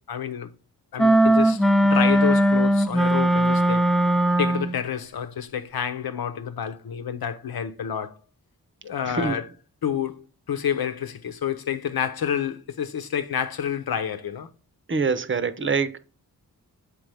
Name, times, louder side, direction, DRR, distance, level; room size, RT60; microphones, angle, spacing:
voice 1, 0.1-0.5 0.9-3.8 4.4-8.1 8.8-9.5 9.8-14.5, left 8 dB, 85° left, 1.0 m, -29 dB
sound 1, 1.0-4.8, right 1 dB, ahead, 0.3 m, -19 dB
voice 2, 9.0-9.4 14.9-16.0, right 4 dB, 35° right, 0.8 m, -25 dB
7.7 x 5.1 x 3.4 m
wide cardioid pair, 135°, 36 cm